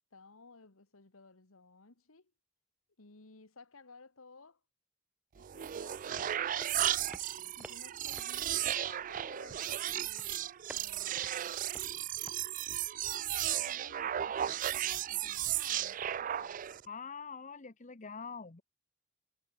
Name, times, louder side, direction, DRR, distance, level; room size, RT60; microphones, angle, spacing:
voice 1, 0.1-2.3 3.0-4.6 5.3-6.3 7.6-11.6 13.1-16.6, left 3 dB, 85° left, 1.8 m, -57 dB
sound 1, 5.4-16.8, right 11 dB, 40° right, 0.3 m, -35 dB
sound 2, 6.1-12.3, right 1 dB, 5° right, 3.5 m, -55 dB
voice 2, 16.9-18.6, left 5 dB, 35° left, 0.9 m, -44 dB
head